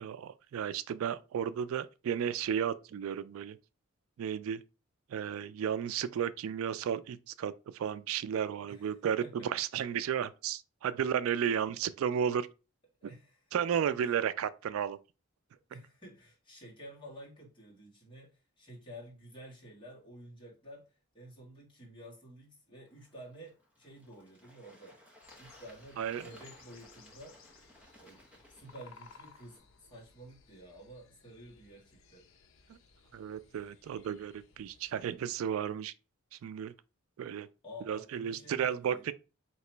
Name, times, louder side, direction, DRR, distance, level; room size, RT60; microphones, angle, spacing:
voice 1, 0.0-3.6 4.2-4.6 5.1-12.5 13.5-15.0 26.0-26.3 32.7-32.8 33.1-35.9 36.3-36.7 37.2-37.5 37.9-39.1, right 8 dB, 75° right, 0.3 m, -33 dB
voice 2, 13.0-13.5 14.0-14.2 15.7-25.0 25.3-27.6 28.0-32.3 37.6-39.0, equal, 20° left, 1.6 m, -51 dB
Bird / Water, 22.9-29.6, left 1 dB, 5° right, 0.7 m, -59 dB
sound 1, 25.2-35.2, left 5 dB, 70° left, 0.6 m, -60 dB
2.9 x 2.8 x 4.4 m
head